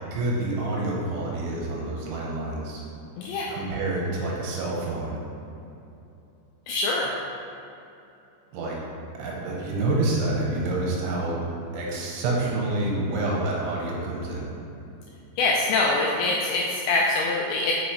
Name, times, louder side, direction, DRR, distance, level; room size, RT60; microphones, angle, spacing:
voice 1, 0.0-2.8 3.5-5.2 8.5-8.8 9.2-11.4 11.7-14.5, right 2 dB, 80° right, -3 dB, 3.2 m, -28 dB
voice 2, 3.2-3.5 6.7-7.1 15.4-17.7, left 3 dB, 85° left, -2 dB, 2.6 m, -24 dB
7.0 x 6.3 x 3.2 m, 2.8 s
omnidirectional pair, 5.6 m